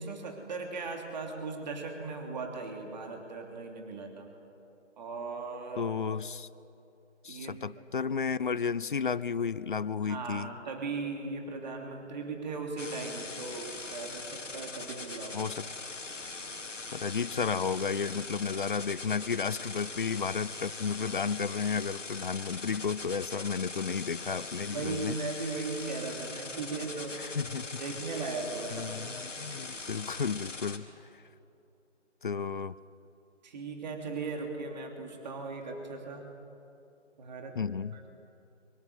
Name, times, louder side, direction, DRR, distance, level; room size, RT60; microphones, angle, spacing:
voice 1, 0.0-4.3 5.0-5.9 7.2-7.6 10.0-15.4 24.6-27.2 27.4-27.5 27.8-29.0 29.5-29.7 33.4-36.3 37.2-37.6 37.9-38.1, right 3 dB, 35° right, 3 dB, 3.0 m, -38 dB
voice 2, 5.8-6.5 7.2-10.5 15.3-15.7 16.9-25.2 27.2-27.8 28.7-30.9 32.2-32.8 37.6-38.0, left 6 dB, 45° left, 18 dB, 0.6 m, -32 dB
sound 1, 12.8-30.8, left 3 dB, 90° left, 2.8 m, -41 dB
24.0 x 22.5 x 8.2 m, 2.7 s
figure-of-eight pair, 160°, 36 cm